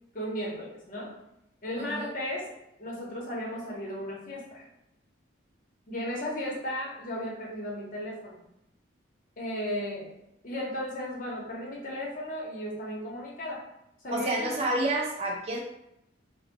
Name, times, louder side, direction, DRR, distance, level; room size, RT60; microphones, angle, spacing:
voice 1, 0.1-1.1 1.6-4.6 5.9-8.4 9.4-10.1 10.4-13.7 14.0-14.5, equal, 40° left, -3 dB, 0.7 m, -35 dB
voice 2, 1.8-2.1 14.1-15.6, right 2 dB, 30° right, -1 dB, 0.4 m, -29 dB
3.9 x 2.0 x 2.5 m, 0.85 s
head